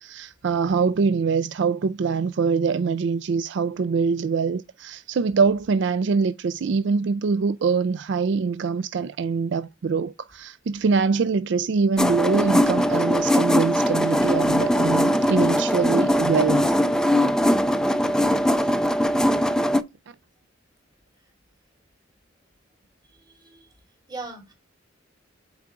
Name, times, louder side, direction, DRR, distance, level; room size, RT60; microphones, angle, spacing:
voice 1, 0.0-16.7, right 5 dB, 60° right, 0.4 m, -24 dB
sound 1, 12.0-19.8, equal, 5° left, 0.4 m, -21 dB
voice 2, 23.1-23.7 24.1-24.5, right 3 dB, 20° right, 3.1 m, -39 dB
8.2 x 4.8 x 2.4 m
head